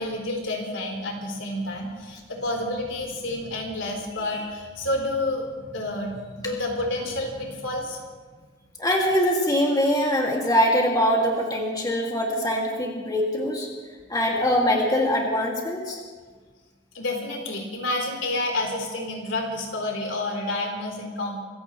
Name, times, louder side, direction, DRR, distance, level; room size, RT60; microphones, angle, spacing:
voice 1, 0.0-8.1 16.9-21.4, left 1 dB, 80° left, 1 dB, 3.8 m, -29 dB
voice 2, 8.8-13.7 14.1-16.0, equal, 20° left, -1 dB, 2.3 m, -23 dB
26.0 x 15.5 x 3.2 m, 1.5 s
head